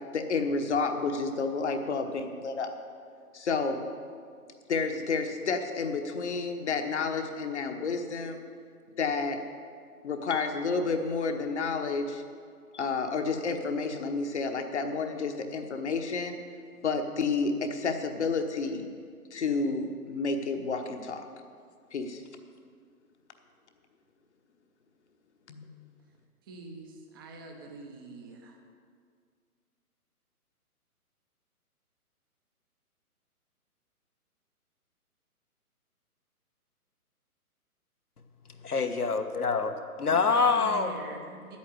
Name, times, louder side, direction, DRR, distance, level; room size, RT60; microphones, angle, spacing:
voice 1, 0.1-2.7 3.3-3.8 4.7-8.4 9.0-9.4 10.0-12.2 12.7-16.3 16.8-18.9 19.3-21.2 21.9-22.2 25.5-25.6, left 4 dB, 50° left, 6 dB, 1.2 m, -30 dB
voice 2, 26.5-28.6 40.1-41.6, right 3 dB, 15° right, 3 dB, 0.8 m, -43 dB
voice 3, 38.7-41.0, left 4 dB, 75° left, 6 dB, 1.3 m, -26 dB
10.0 x 8.6 x 8.0 m, 2.1 s
figure-of-eight pair, 135°, 45 cm